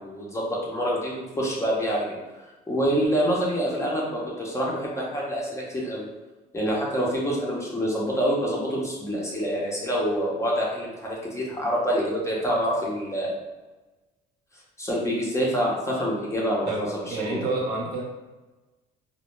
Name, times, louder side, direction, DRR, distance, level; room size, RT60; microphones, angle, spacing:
voice 1, 0.0-2.2 2.7-6.1 6.5-13.3 14.8-17.4, equal, 15° left, -4 dB, 0.6 m, -26 dB
voice 2, 16.7-18.0, right 2 dB, 70° right, -3 dB, 0.6 m, -29 dB
2.1 x 2.0 x 3.0 m, 1.2 s
cardioid pair, 110°, 17 cm